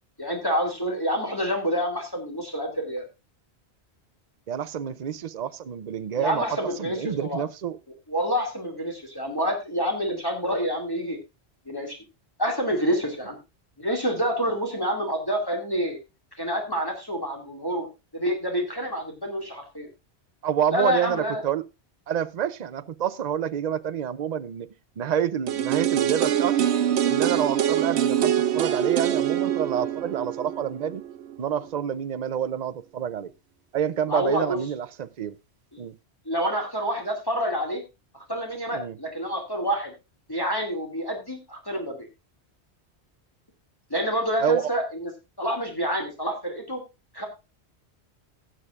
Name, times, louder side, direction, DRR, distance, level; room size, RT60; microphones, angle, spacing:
voice 1, 0.2-3.0 6.2-7.4 8.1-11.2 11.7-12.0 12.4-13.4 13.8-16.0 16.4-17.9 18.1-19.9 20.7-21.4 34.1-34.6 35.7-35.8 36.3-37.8 38.3-39.9 40.3-42.1 43.9-45.1 45.4-46.8 47.1-47.3, equal, 20° left, 2.4 m, -27 dB
voice 2, 4.5-7.8 20.4-21.6 22.1-24.7 25.0-26.7 27.0-31.0 31.4-33.3 33.7-35.4 35.8-35.9 38.7-39.0 44.4-44.7, right 9 dB, 45° right, 0.7 m, -28 dB
sound 1, 25.5-31.4 31.7-31.8, right 10 dB, 80° right, 1.0 m, -24 dB
19.0 x 7.7 x 2.4 m
omnidirectional pair, 1.1 m